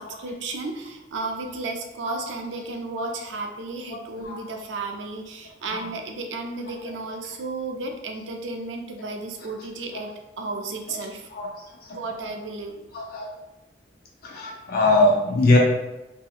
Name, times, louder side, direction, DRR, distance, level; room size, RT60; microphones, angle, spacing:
voice 1, 0.0-11.3 11.9-12.7, right 3 dB, 85° right, 4 dB, 0.4 m, -33 dB
voice 2, 3.9-4.4 5.6-5.9 9.9-10.1 10.9-11.0 11.3-11.5 11.8-12.0 12.9-13.3 14.2-15.6, left 2 dB, 55° left, -1 dB, 0.4 m, -23 dB
2.7 x 2.7 x 2.4 m, 0.98 s
head